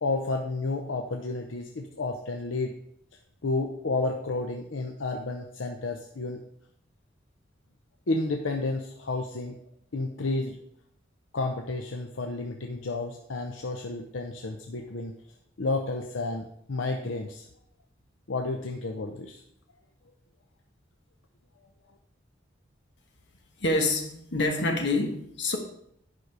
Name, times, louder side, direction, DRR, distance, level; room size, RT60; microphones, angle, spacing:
voice 1, 0.0-2.8 3.4-6.4 8.1-9.6 9.9-10.6 11.3-15.1 15.6-17.5 18.3-19.4, left 3 dB, 80° left, 3 dB, 0.7 m, -31 dB
voice 2, 23.6-25.6, left 2 dB, 65° left, 3 dB, 1.4 m, -26 dB
10.5 x 5.3 x 4.8 m, 0.73 s
head